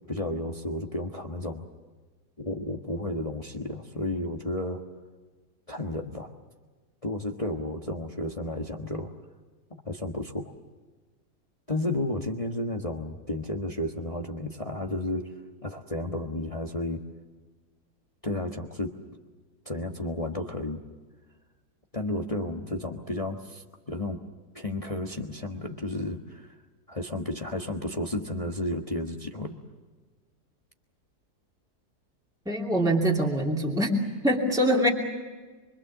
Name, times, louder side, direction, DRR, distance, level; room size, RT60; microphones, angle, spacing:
voice 1, 0.1-1.7 2.4-4.8 5.7-6.3 7.0-9.1 9.8-10.5 11.7-15.4 15.6-17.0 18.2-19.0 19.6-20.8 21.9-24.2 24.5-26.5 26.9-29.6, left 1 dB, 20° left, 2 dB, 1.4 m, -32 dB
voice 2, 32.5-33.9 34.2-34.9, right 1 dB, ahead, -2 dB, 2.7 m, -24 dB
25.5 x 25.0 x 7.3 m, 1.3 s
omnidirectional pair, 1.7 m